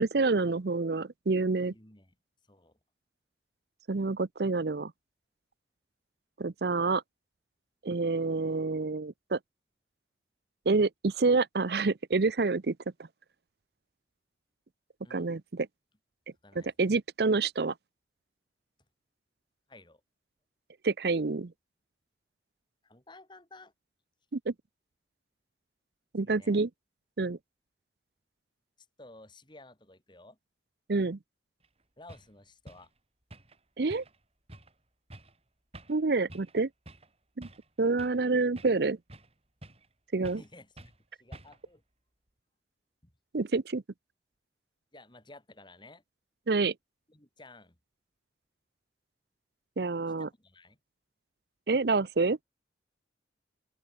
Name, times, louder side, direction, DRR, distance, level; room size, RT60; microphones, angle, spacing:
voice 1, 0.0-1.7 3.9-4.9 6.4-7.0 7.8-9.4 10.7-12.7 15.1-15.7 16.8-17.7 20.8-21.5 24.3-24.5 26.1-26.7 27.2-27.4 30.9-31.2 33.8-34.0 35.9-36.7 37.4-37.5 37.8-39.0 40.1-40.4 43.3-43.8 46.5-46.7 49.8-50.3 51.7-52.4, right 3 dB, 60° right, 0.6 m, -27 dB
voice 2, 1.7-2.1 2.5-2.8 15.0-15.3 16.4-17.0 19.7-20.0 22.8-23.7 26.2-26.6 28.8-30.4 32.0-32.9 40.3-41.8 43.0-43.1 44.9-46.0 47.1-47.8 50.2-50.8, left 2 dB, 25° left, 3.5 m, -54 dB
sound 1, 31.6-31.7 32.1-32.3 32.7-32.9 33.3-33.6 33.9-34.2 34.5-34.7 35.1-35.4 35.7-36.0 36.3-36.6 36.9-37.1 37.4-38.2 38.6-39.3 39.6-39.9 40.2-40.5 40.8-41.0 41.3-41.7, right 1 dB, 35° right, 7.4 m, -49 dB
open air
head